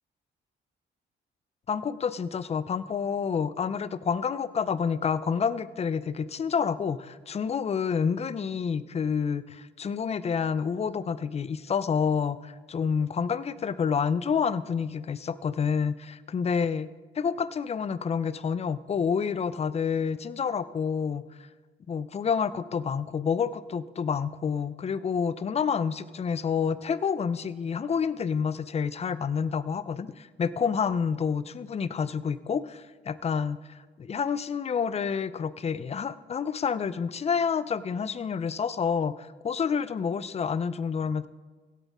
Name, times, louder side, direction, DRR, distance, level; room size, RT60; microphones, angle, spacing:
voice 1, 1.7-16.9 17.1-21.2 21.9-33.6 34.0-41.3, left 6 dB, 30° left, 15 dB, 0.5 m, -28 dB
16.0 x 8.3 x 3.6 m, 1.3 s
cardioid pair, 90°, 20 cm